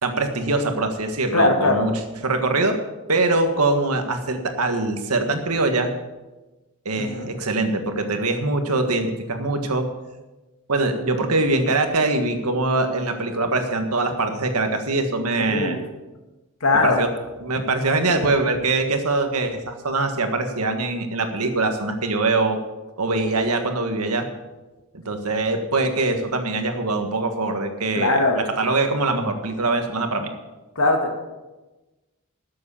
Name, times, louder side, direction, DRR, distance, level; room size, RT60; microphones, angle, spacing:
voice 1, 0.0-1.9 2.2-2.8 3.1-5.9 6.8-9.9 10.7-15.8 16.8-17.1 17.4-22.6 23.0-24.3 25.0-28.2 28.6-30.3, right 2 dB, 85° right, 6 dB, 1.6 m, -23 dB
voice 2, 1.3-1.8 7.0-7.3 15.4-15.8 16.6-17.0 28.0-28.4 30.8-31.2, left 2 dB, 70° left, 2 dB, 2.3 m, -20 dB
13.0 x 7.6 x 7.1 m, 1.1 s
head